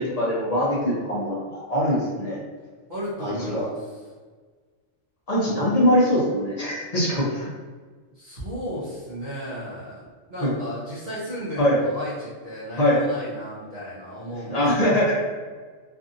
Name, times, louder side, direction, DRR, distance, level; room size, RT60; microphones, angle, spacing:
voice 1, 0.0-2.4 3.2-3.6 5.3-7.5 10.4-10.5 11.6-11.8 12.8-13.0 14.5-15.1, equal, 40° left, -5 dB, 0.6 m, -22 dB
voice 2, 2.9-3.9 8.1-10.0 10.3-14.6, equal, 45° right, -9 dB, 0.7 m, -34 dB
2.6 x 2.6 x 2.4 m, 1.5 s
omnidirectional pair, 1.2 m